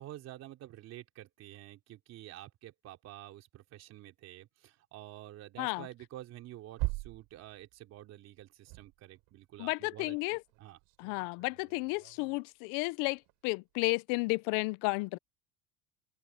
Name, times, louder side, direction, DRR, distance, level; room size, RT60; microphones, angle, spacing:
voice 1, 0.0-10.8, right 14 dB, 45° right, 3.5 m, -49 dB
sound 1, 5.7-8.1 8.4-9.7 10.1-12.5 12.9-13.8, right 27 dB, 65° right, 4.6 m, -42 dB
voice 2, 9.6-10.4 11.0-15.2, left 26 dB, 60° left, 0.6 m, -32 dB
open air
cardioid pair, 145°, 36 cm